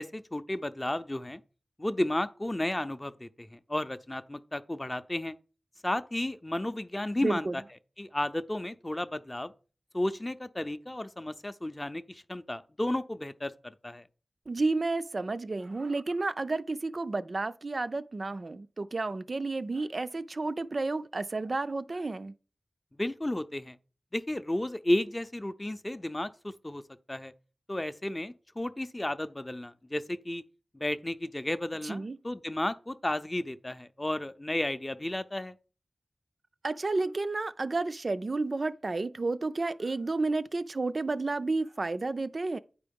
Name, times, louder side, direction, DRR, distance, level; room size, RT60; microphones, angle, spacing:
voice 1, 0.0-1.4 1.8-5.3 5.8-7.6 8.0-9.5 9.9-14.1 22.9-23.8 24.1-26.8 27.1-27.3 27.7-30.4 30.7-35.6, left 1 dB, 20° left, 0.5 m, -33 dB
voice 2, 7.2-7.5 14.5-22.3 31.8-32.2 36.6-42.6, right 3 dB, 50° right, 0.4 m, -31 dB
9.2 x 4.6 x 5.2 m
wide cardioid pair, 75°, 0 cm